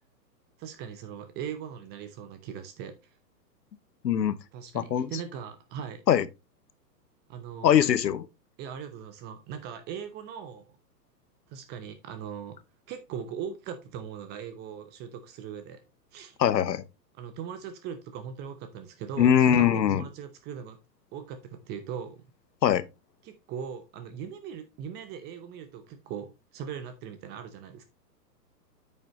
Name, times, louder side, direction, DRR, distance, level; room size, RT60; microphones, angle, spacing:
voice 1, 0.6-3.0 4.5-6.0 7.3-7.9 8.6-10.7 11.5-12.6 12.9-15.8 16.1-16.4 17.1-20.8 21.1-22.2 23.2-27.8, right 8 dB, 20° right, 0.7 m, -39 dB
voice 2, 4.0-4.4 4.7-5.1 6.1-6.3 7.6-8.3 16.4-16.8 19.2-20.0 22.6-22.8, left 9 dB, 85° left, 1.0 m, -22 dB
8.8 x 6.6 x 2.9 m
hypercardioid pair, 130°, 49 cm